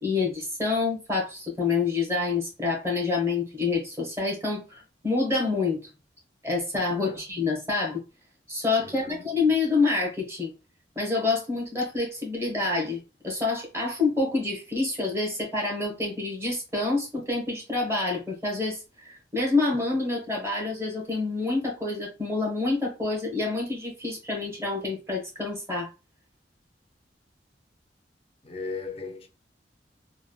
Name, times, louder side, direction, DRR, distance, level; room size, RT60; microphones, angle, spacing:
voice 1, 0.0-5.8 6.4-8.0 8.5-10.5 10.9-13.0 13.2-25.9, left 3 dB, 15° right, 1.1 m, -27 dB
voice 2, 6.9-7.2 8.8-9.3 28.4-29.3, left 4 dB, 35° left, 0.5 m, -37 dB
3.3 x 2.3 x 2.3 m
head